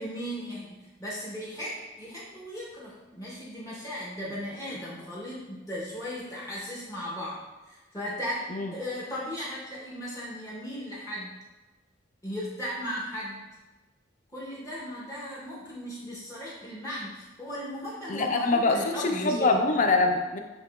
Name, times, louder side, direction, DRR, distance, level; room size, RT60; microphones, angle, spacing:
voice 1, 0.0-11.4 12.2-13.4 14.3-19.6, equal, 15° left, -6 dB, 0.8 m, -37 dB
voice 2, 18.1-20.4, left 3 dB, 40° left, 4 dB, 0.4 m, -24 dB
7.3 x 2.9 x 2.3 m, 1.1 s
head